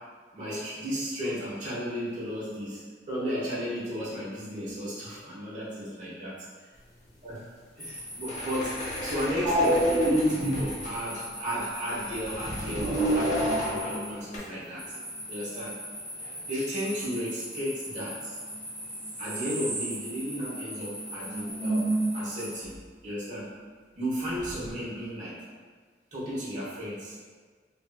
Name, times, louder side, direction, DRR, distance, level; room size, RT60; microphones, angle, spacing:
voice 1, 0.3-2.8 3.1-6.3 7.2-7.4 7.8-8.7 9.0-14.8 15.3-15.7 16.2-18.4 19.2-22.7 23.0-23.5 23.9-25.4 26.1-27.2, equal, 45° right, -9 dB, 1.2 m, -34 dB
sound 1, 6.7-14.4, left 1 dB, 45° left, 0.7 m, -40 dB
sound 2, 7.8-22.6, equal, 5° left, 0.8 m, -41 dB
sound 3, 9.4-10.7 12.2-14.4 18.5-18.6 18.9-20.2 20.5-20.6 20.8-20.9 21.2-22.2 24.4-24.7, right 1 dB, 30° right, 0.5 m, -28 dB
3.2 x 3.0 x 2.3 m, 1.5 s
head